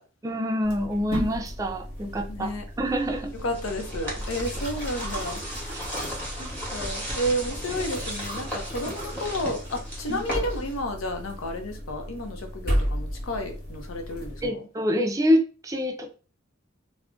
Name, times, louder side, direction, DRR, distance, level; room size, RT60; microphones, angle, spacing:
voice 1, 0.2-2.5 2.8-3.3 5.7-5.9 10.1-10.2 14.4-16.1, equal, 15° right, 0.4 m, -26 dB
sound 1, 0.6-14.5, equal, 50° left, 1.2 m, -34 dB
voice 2, 2.3-2.7 3.3-5.4 6.4-14.7, equal, 85° left, 0.6 m, -32 dB
sound 2, 3.1-10.9, equal, 10° left, 0.9 m, -36 dB
2.4 x 2.1 x 3.6 m
head